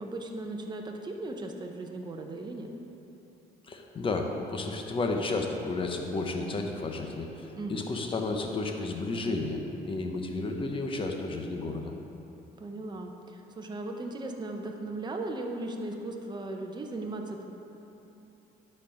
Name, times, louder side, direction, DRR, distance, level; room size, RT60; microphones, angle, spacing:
voice 1, 0.0-2.7 7.5-7.9 12.6-17.5, right 2 dB, 25° right, 2 dB, 0.9 m, -37 dB
voice 2, 3.7-11.9, left 3 dB, 30° left, 3 dB, 0.9 m, -32 dB
11.5 x 4.5 x 5.1 m, 3.0 s
cardioid pair, 110°, 17 cm